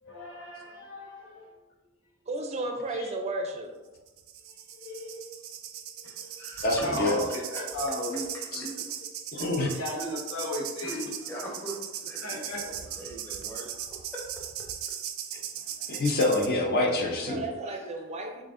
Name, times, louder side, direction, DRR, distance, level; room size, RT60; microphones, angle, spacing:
voice 1, 0.0-1.5 2.7-3.3 4.7-5.2 5.9-6.3 6.6-9.1 9.7-11.1 12.2-12.7 13.4-13.9, left 1 dB, 85° left, -3 dB, 1.2 m, -37 dB
voice 2, 2.3-3.7 17.2-18.4, right 2 dB, 30° right, 3 dB, 0.4 m, -33 dB
sound 1, 4.1-16.5, right 9 dB, 90° right, 0.4 m, -38 dB
voice 3, 6.0-7.1 8.6-8.7 9.4-9.5 10.8-13.7 14.1-14.4 17.7-17.9, equal, 10° left, -4 dB, 0.9 m, -42 dB
voice 4, 6.6-7.2 8.5-8.7 9.3-9.7 15.9-17.4, left 2 dB, 50° left, 1 dB, 0.6 m, -26 dB
6.9 x 2.5 x 2.5 m, 1.1 s
head